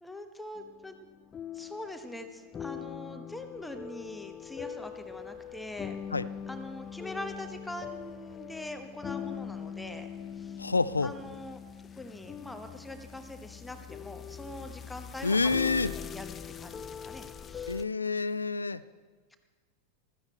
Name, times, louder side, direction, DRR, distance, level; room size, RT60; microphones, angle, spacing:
voice 1, 0.0-0.9 1.5-6.0 6.5-10.1 10.4-10.6 11.0-11.6 12.0-15.4 15.9-17.7, left 1 dB, 5° left, 6 dB, 1.1 m, -43 dB
sound 1, 0.6-17.8, left 8 dB, 20° left, 0.4 m, -42 dB
voice 2, 10.6-11.1 15.2-15.9 17.7-18.8, left 4 dB, 80° left, 16 dB, 0.4 m, -28 dB
15.0 x 13.5 x 4.5 m, 1.4 s
figure-of-eight pair, 90°, 0 cm